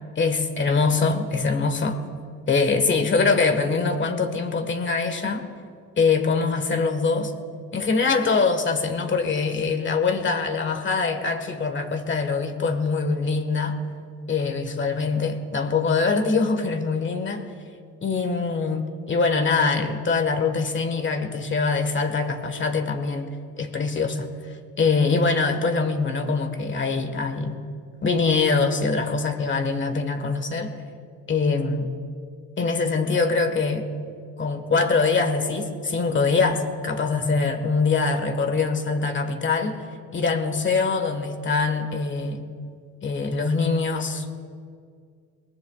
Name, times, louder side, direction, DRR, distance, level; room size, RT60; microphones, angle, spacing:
voice 1, 0.1-2.0 2.5-5.5 6.0-7.3 7.7-13.8 14.3-17.4 18.0-24.3 24.8-27.6 28.0-30.7 31.3-31.9 32.6-33.9 34.4-39.8 40.1-42.5 43.0-44.4, left 4 dB, 35° left, 7 dB, 1.5 m, -23 dB
22.5 x 19.5 x 2.4 m, 2.2 s
cardioid pair, 120°, 35 cm